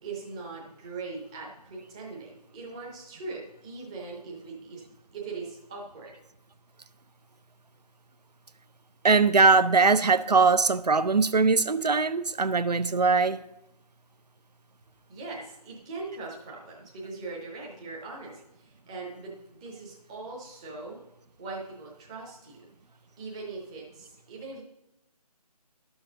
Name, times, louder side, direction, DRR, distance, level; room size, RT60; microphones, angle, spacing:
voice 1, 0.0-4.8 5.1-6.2 15.1-21.0 21.4-22.7 23.2-24.6, right 3 dB, 10° right, 0.7 m, -40 dB
voice 2, 9.0-13.4, right 4 dB, 85° right, 0.5 m, -21 dB
11.5 x 6.4 x 3.7 m
figure-of-eight pair, 155°, 20 cm